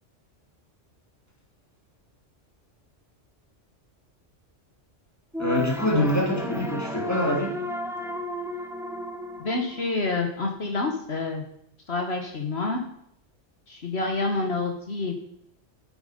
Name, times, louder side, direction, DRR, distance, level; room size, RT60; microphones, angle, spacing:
sound 1, 5.3-10.4, equal, 5° right, 0.6 m, -33 dB
voice 1, 5.4-7.6, left 1 dB, 15° left, 2.9 m, -25 dB
voice 2, 9.4-11.4 11.9-12.8 13.7-15.2, left 3 dB, 60° left, 1.6 m, -28 dB
12.5 x 9.4 x 5.1 m
omnidirectional pair, 1.2 m